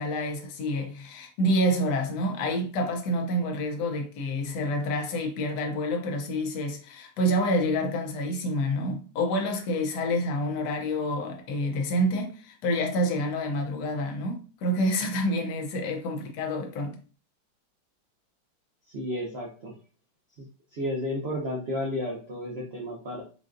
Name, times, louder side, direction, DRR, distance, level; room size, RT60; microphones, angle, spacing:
voice 1, 0.0-17.0, equal, 65° left, 1.2 m, -28 dB
voice 2, 18.9-19.7 20.4-20.5 20.7-23.2, left 1 dB, 80° right, 0.5 m, -32 dB
5.2 x 2.4 x 2.5 m
omnidirectional pair, 2.3 m